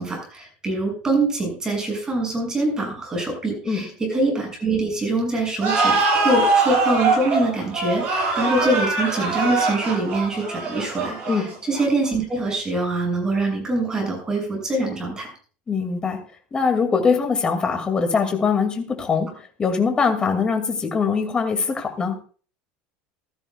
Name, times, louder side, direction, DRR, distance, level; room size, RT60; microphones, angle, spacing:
voice 1, 0.0-15.3, right 2 dB, 15° right, 1 dB, 6.9 m, -24 dB
sound 1, 5.6-12.1, right 3 dB, 40° right, 7.6 m, -22 dB
voice 2, 15.7-16.2 16.5-22.2, left 5 dB, 20° left, 5 dB, 2.4 m, -22 dB
16.5 x 13.0 x 2.4 m, 0.40 s
supercardioid pair, 140°, 4 cm